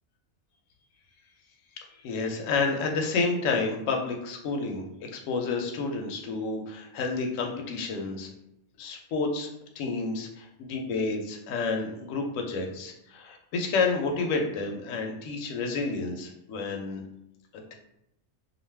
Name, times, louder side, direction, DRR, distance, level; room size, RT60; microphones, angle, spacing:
voice 1, 2.0-8.3 8.8-17.0 17.5-17.7, left 4 dB, 70° left, 3 dB, 0.9 m, -30 dB
2.4 x 2.3 x 3.3 m, 0.80 s
omnidirectional pair, 1.5 m